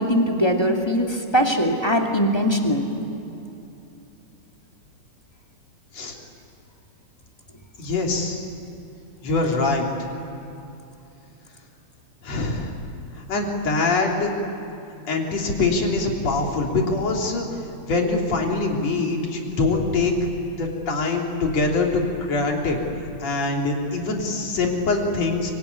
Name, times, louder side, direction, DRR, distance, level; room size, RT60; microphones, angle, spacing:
voice 1, 0.0-2.8, equal, 10° left, 1 dB, 1.8 m, -21 dB
voice 2, 7.8-8.4 9.2-9.9 12.2-12.7 13.2-14.3 15.1-17.5 17.8-20.1 20.6-22.8 23.2-25.5, left 3 dB, 55° left, 0 dB, 4.3 m, -23 dB
24.5 x 23.5 x 9.7 m, 2.8 s
omnidirectional pair, 3.6 m